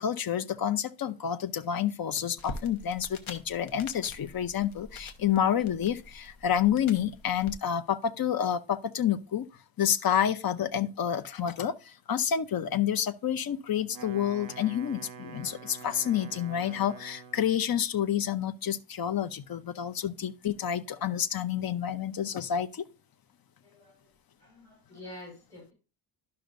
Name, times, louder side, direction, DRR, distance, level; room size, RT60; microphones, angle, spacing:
voice 1, 0.0-9.5 9.8-22.8, left 9 dB, 50° left, 0.7 m, -29 dB
sound 1, 2.4-7.5, left 2 dB, 85° left, 1.2 m, -45 dB
Wind instrument woodwind instrument, 13.8-17.6, right 5 dB, 45° right, 0.8 m, -46 dB
voice 2, 23.6-24.1 24.4-25.7, left 1 dB, 5° left, 4.9 m, -48 dB
12.0 x 5.6 x 2.5 m
wide cardioid pair, 120°, 46 cm